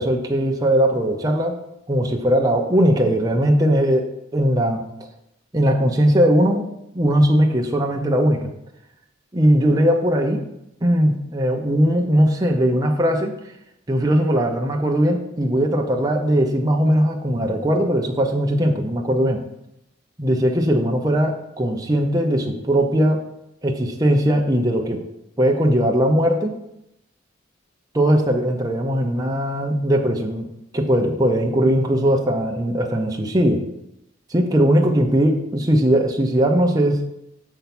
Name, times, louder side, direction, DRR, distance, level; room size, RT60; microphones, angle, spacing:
voice 1, 0.0-1.6 1.9-4.1 4.3-4.8 5.5-6.7 6.9-8.5 9.3-10.4 10.8-13.3 13.9-19.4 20.2-23.2 23.6-25.0 25.4-26.5 27.9-30.5 30.7-33.6 34.3-37.0, equal, 20° right, 1 dB, 0.7 m, -19 dB
7.0 x 4.5 x 6.0 m, 0.82 s
head